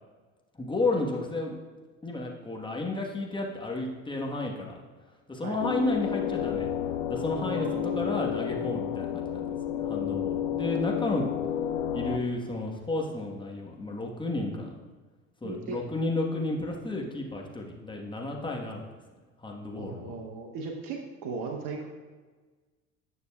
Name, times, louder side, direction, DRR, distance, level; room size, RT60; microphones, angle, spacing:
voice 1, 0.6-1.6 2.0-4.7 5.3-6.7 7.1-11.3 11.9-14.8 15.4-18.8 19.4-20.1, left 2 dB, 10° left, 0 dB, 1.3 m, -32 dB
sound 1, 5.6-12.2, left 10 dB, 75° left, 0.5 m, -31 dB
voice 2, 7.4-8.1 15.4-15.8 19.8-21.9, right 4 dB, 55° right, 2 dB, 0.9 m, -37 dB
9.4 x 6.4 x 2.3 m, 1.3 s
hypercardioid pair, 70°, 39 cm